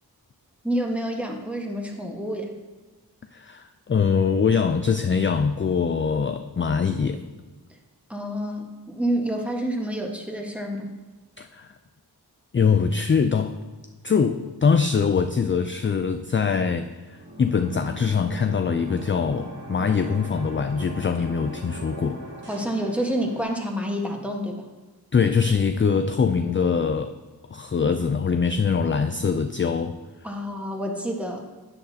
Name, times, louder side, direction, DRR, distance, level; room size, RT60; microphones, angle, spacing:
voice 1, 0.6-2.5 8.1-10.9 22.5-24.6 30.2-31.4, equal, 5° right, 1 dB, 1.3 m, -28 dB
voice 2, 3.3-7.2 11.4-11.7 12.5-13.6 14.0-22.2 25.1-27.1 27.5-30.0, left 5 dB, 30° left, 8 dB, 0.4 m, -23 dB
sound 1, 17.0-23.4, right 1 dB, 75° right, 1.9 m, -40 dB
10.0 x 9.2 x 2.8 m, 1.3 s
wide cardioid pair, 65°, 40 cm